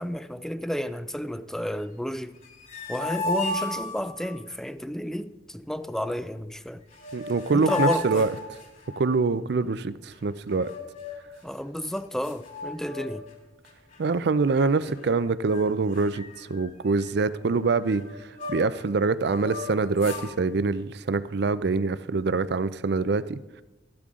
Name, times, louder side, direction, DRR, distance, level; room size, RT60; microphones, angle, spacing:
voice 1, 0.0-2.4 2.9-6.8 7.5-8.3 11.4-13.3, equal, 5° left, 0.4 m, -31 dB
sound 1, 2.4-4.4 6.6-6.7 6.9-9.1 10.5-11.3 11.8-11.9 12.2-13.3 13.6-14.0 14.6-15.2 15.5-15.6 15.9-18.8 19.2-20.3, left 3 dB, 45° left, 2.9 m, -34 dB
voice 2, 7.1-8.3 9.0-10.7 14.0-18.0 18.5-23.4, right 4 dB, 65° right, 0.5 m, -25 dB
13.5 x 12.0 x 3.7 m
head